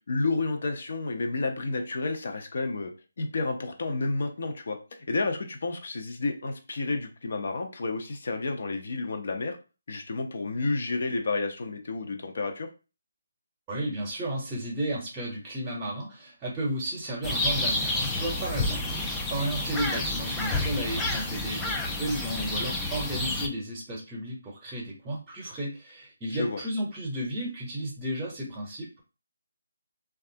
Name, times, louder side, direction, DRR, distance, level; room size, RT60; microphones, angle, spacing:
voice 1, 0.1-2.9 3.2-4.8 5.1-9.6 9.9-12.7 26.3-26.6, left 3 dB, 55° left, 5 dB, 0.6 m, -30 dB
voice 2, 13.7-18.8 19.3-29.0, right 1 dB, 15° right, -2 dB, 0.8 m, -33 dB
sound 1, 17.2-23.5, left 2 dB, 10° left, 0.4 m, -29 dB
3.1 x 2.3 x 2.7 m, 0.32 s
figure-of-eight pair, 150°, 0 cm